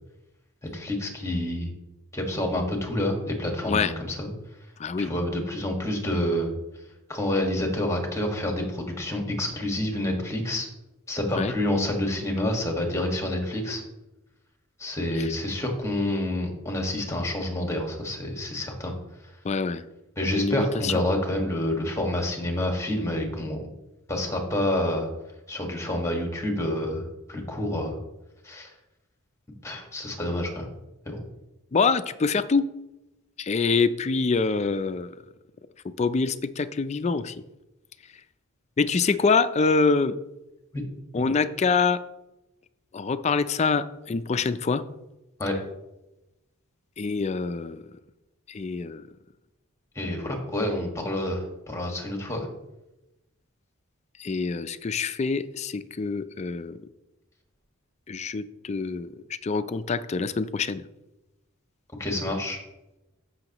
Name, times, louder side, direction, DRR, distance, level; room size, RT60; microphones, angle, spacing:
voice 1, 0.7-1.7 2.1-4.3 5.0-6.5 7.1-10.7 11.1-13.8 14.8-18.9 20.2-23.6 24.1-25.1 25.5-27.9 28.4-28.7 29.6-30.7 31.0-31.2 40.7-40.8 45.4-45.5 49.9-52.5 62.0-62.6, left 1 dB, 15° left, 2 dB, 1.6 m, -28 dB
voice 2, 4.8-5.1 11.3-11.5 15.1-15.3 19.4-19.8 20.3-21.0 31.7-32.6 33.4-35.1 36.0-37.4 38.8-40.1 41.1-42.0 42.9-44.8 47.0-47.8 48.5-49.0 54.2-56.8 58.1-59.1 59.4-60.8, left 4 dB, 30° left, 12 dB, 0.4 m, -25 dB
13.5 x 6.3 x 3.0 m, 0.97 s
head